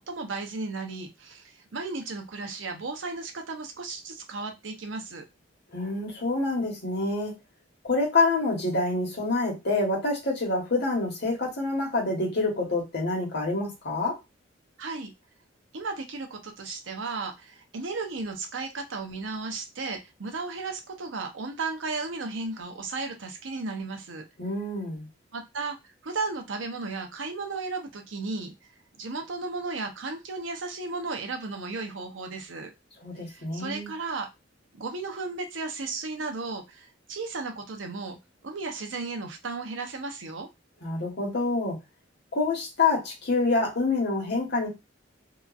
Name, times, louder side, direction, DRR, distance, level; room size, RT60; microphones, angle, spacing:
voice 1, 0.0-5.2 14.8-15.1 15.7-24.2 25.3-25.8 26.0-28.5 29.0-32.7 33.3-34.3 34.7-38.2 38.4-40.5, right 3 dB, 80° right, 0.7 m, -34 dB
voice 2, 5.7-7.3 7.8-14.2 24.4-25.1 33.0-33.9 40.8-41.8 42.3-44.7, left 3 dB, 60° left, 1.2 m, -27 dB
2.9 x 2.4 x 2.4 m
head